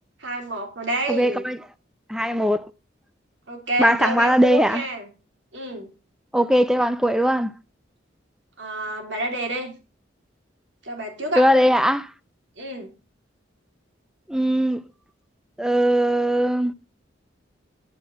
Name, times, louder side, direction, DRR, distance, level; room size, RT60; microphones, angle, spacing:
voice 1, 0.2-1.5 3.5-5.1 5.5-5.9 8.6-9.7 10.8-11.4 12.6-12.9, right 2 dB, 70° right, 3.2 m, -29 dB
voice 2, 1.1-1.6 2.1-2.6 3.8-4.8 6.3-7.5 11.4-12.1 14.3-14.8 15.6-16.7, equal, 5° right, 0.5 m, -19 dB
10.5 x 5.8 x 6.2 m
head